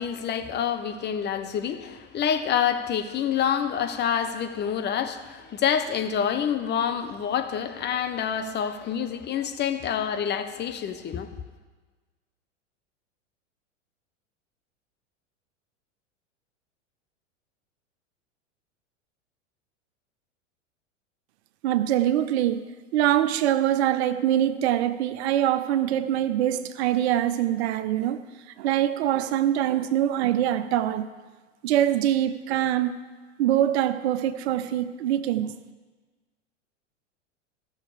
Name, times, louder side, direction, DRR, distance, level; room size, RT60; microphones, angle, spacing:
voice 1, 0.0-11.3, left 8 dB, 30° left, 0.9 m, -27 dB
voice 2, 21.6-28.2 28.6-31.1 31.6-33.0 33.4-35.5, right 11 dB, 60° right, 0.7 m, -24 dB
15.0 x 6.5 x 4.9 m
hypercardioid pair, 100°, 37 cm